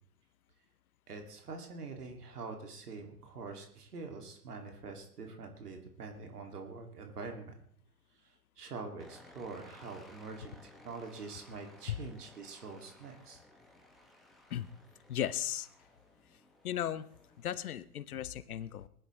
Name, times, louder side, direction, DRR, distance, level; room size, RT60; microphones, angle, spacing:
voice 1, 1.1-7.5 8.6-13.4, right 4 dB, 75° right, 4 dB, 2.7 m, -45 dB
sound 1, 9.0-17.7, left 1 dB, ahead, 1.7 m, -58 dB
voice 2, 15.1-15.7 16.6-17.1 17.4-18.9, left 11 dB, 65° left, 16 dB, 0.9 m, -36 dB
20.0 x 12.0 x 3.3 m, 0.64 s
hypercardioid pair, 125°, 46 cm